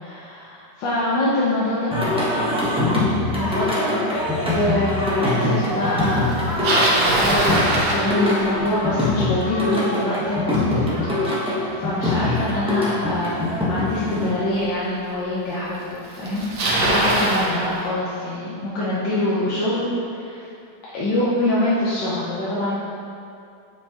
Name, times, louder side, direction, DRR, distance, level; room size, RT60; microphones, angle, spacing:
voice 1, 0.0-1.9 3.3-3.9 4.4-10.8 11.3-20.5 20.9-22.8, left 1 dB, 70° left, -9 dB, 1.5 m, -25 dB
Singing, 1.9-14.3, left 2 dB, 5° right, 0.5 m, -23 dB
Bicycle, 6.3-8.6 13.7-13.8 14.6-14.7 15.7-15.8 16.0-17.5, right 1 dB, 90° right, 1.8 m, -21 dB
7.7 x 5.0 x 2.9 m, 2.6 s
omnidirectional pair, 2.2 m